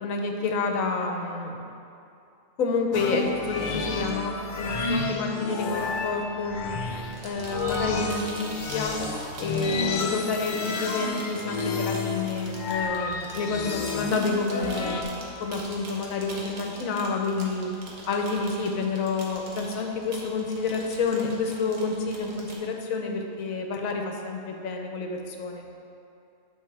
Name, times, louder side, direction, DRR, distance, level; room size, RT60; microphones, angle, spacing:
voice 1, 0.0-1.6 2.6-6.8 7.2-9.0 9.4-15.1 15.4-17.7 18.1-25.7, left 4 dB, 75° left, 2 dB, 1.1 m, -29 dB
sound 1, 2.9-15.0, left 4 dB, 60° left, 0.5 m, -31 dB
sound 2, 7.1-22.6, right 2 dB, 80° right, 1.5 m, -43 dB
9.4 x 6.0 x 3.3 m, 2.7 s
omnidirectional pair, 1.4 m